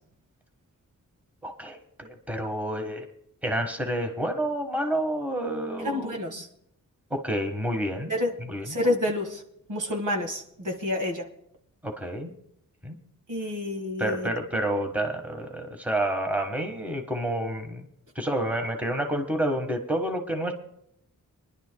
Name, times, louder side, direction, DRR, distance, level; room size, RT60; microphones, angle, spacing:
voice 1, 1.4-3.1 3.4-6.2 7.1-8.1 8.5-8.7 11.8-12.3 12.8-12.9 14.0-17.9 18.1-20.5, right 1 dB, 5° right, 4 dB, 1.5 m, -29 dB
voice 2, 5.8-6.5 8.1-8.3 8.6-9.4 9.7-11.3 13.3-14.3, left 1 dB, 65° right, 2 dB, 1.9 m, -28 dB
25.0 x 11.0 x 2.3 m, 0.73 s
wide cardioid pair, 115°, 33 cm